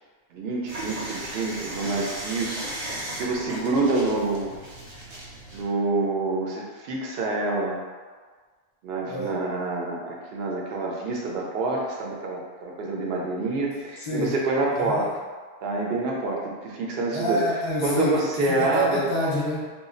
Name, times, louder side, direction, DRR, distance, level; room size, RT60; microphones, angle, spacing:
voice 1, 0.3-4.5 5.5-7.8 8.8-15.1 15.6-17.4 17.8-19.0, right 2 dB, 75° right, -2 dB, 0.8 m, -27 dB
sound 1, 0.7-5.6, right 1 dB, 40° right, 0.5 m, -36 dB
voice 2, 14.0-14.4 14.7-15.1 17.1-19.7, equal, 35° left, -5 dB, 0.5 m, -28 dB
2.3 x 2.0 x 3.7 m, 1.5 s
omnidirectional pair, 1.1 m